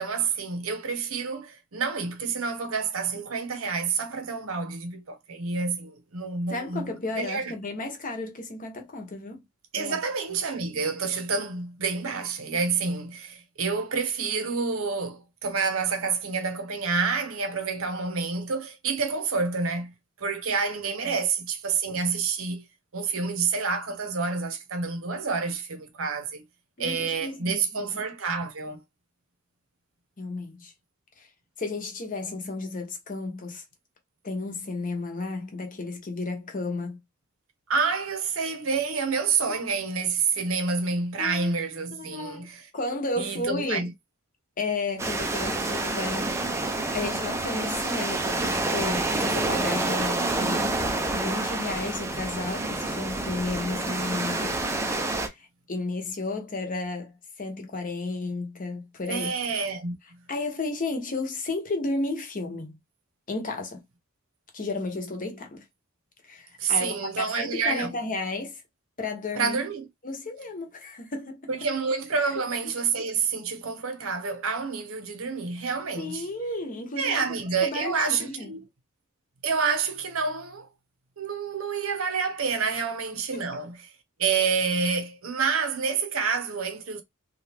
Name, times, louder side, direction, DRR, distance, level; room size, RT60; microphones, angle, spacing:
voice 1, 0.0-7.5 9.7-19.9 20.2-22.7 22.9-26.4 26.8-28.8 37.7-42.6 43.2-43.9 59.1-60.0 66.6-67.9 69.3-69.9 71.5-76.3 77.0-78.6 79.4-80.7 81.2-83.8 84.2-87.0, right 5 dB, 70° right, 0.7 m, -28 dB
voice 2, 6.5-9.4 9.7-10.0 21.0-21.1 26.8-27.9 30.2-30.7 31.2-31.3 31.6-33.6 34.2-37.0 41.2-41.5 41.9-42.5 42.7-43.9 44.6-46.4 46.9-50.7 51.1-54.6 55.1-59.3 60.3-62.8 63.3-63.8 64.5-65.6 66.2-68.6 69.0-69.6 70.0-71.5 76.0-77.2 77.6-78.5 83.3-83.4, left 3 dB, 40° left, 0.8 m, -33 dB
sound 1, 45.0-55.3, right 2 dB, 15° right, 0.4 m, -28 dB
2.8 x 2.3 x 3.3 m
head